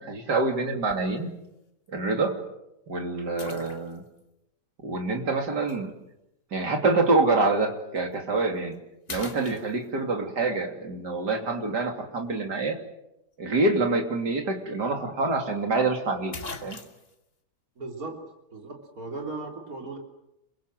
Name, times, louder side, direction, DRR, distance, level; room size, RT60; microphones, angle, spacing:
voice 1, 0.0-1.3 1.9-2.4 2.9-4.0 4.8-5.9 6.5-8.7 9.1-12.8 13.4-16.8, right 3 dB, 90° right, 4 dB, 3.5 m, -26 dB
sound 1, 0.9-1.2 1.9-2.0 3.4-4.2 5.7-5.8 8.0-8.2 8.6-8.8 9.1-10.2 14.3-14.4 14.7-14.8 15.8-15.9 16.3-17.2, left 3 dB, 35° left, 1.9 m, -41 dB
voice 2, 17.8-18.2 18.5-20.0, right 3 dB, 60° right, 2 dB, 4.0 m, -37 dB
27.5 x 23.0 x 7.7 m, 0.87 s
omnidirectional pair, 1.7 m